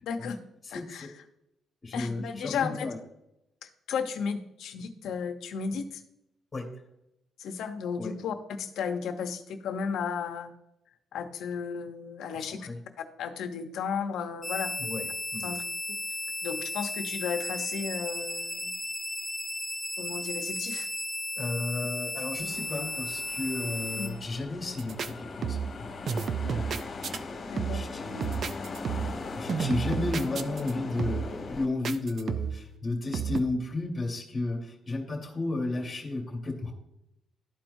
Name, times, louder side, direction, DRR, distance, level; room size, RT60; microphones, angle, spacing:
voice 1, 0.0-0.4 0.7-1.1 1.9-2.9 3.6-6.0 7.4-10.5 11.1-12.6 13.2-14.7 15.4-15.6 16.4-18.7 20.0-20.9 24.0-24.2 26.4-26.6 27.5-27.8, left 6 dB, 80° left, 7 dB, 0.8 m, -34 dB
voice 2, 0.7-1.1 1.8-3.0 6.5-6.7 8.0-8.1 12.3-12.8 14.8-15.1 15.3-15.5 21.4-26.0 26.5-36.7, left 2 dB, 30° left, 1 dB, 2.1 m, -33 dB
sound 1, 14.4-24.1, left 1 dB, ahead, 2.4 m, -35 dB
sound 2, 22.5-31.7, left 3 dB, 45° left, 1.5 m, -40 dB
sound 3, 24.8-25.1 25.4-25.8 26.1-27.2 27.6-27.9 28.2-29.2 29.5-30.7 31.0-31.4 31.8-32.7 33.1-33.4, right 6 dB, 55° right, 0.5 m, -31 dB
12.5 x 4.4 x 2.7 m, 0.82 s
cardioid pair, 90°, 0 cm